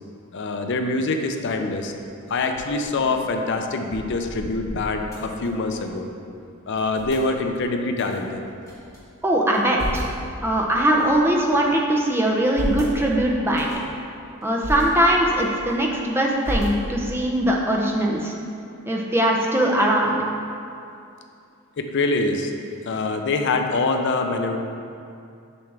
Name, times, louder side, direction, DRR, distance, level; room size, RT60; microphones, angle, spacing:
voice 1, 0.3-1.9 2.3-6.1 6.7-8.4 21.8-22.5 22.8-24.6, left 3 dB, 55° left, 5 dB, 0.5 m, -24 dB
sound 1, 2.5-6.0 6.3-6.4 6.7-7.3 7.9-9.0 9.4-10.2 10.8-11.7 12.2-12.9 13.5-13.9 14.4-14.8 15.3-16.0 16.4-17.2, equal, 15° left, 1.4 m, -34 dB
voice 2, 9.2-10.1 10.4-13.7 14.4-18.3 18.8-20.2, right 1 dB, 10° right, -1 dB, 0.6 m, -21 dB
6.9 x 5.8 x 3.3 m, 2.5 s
head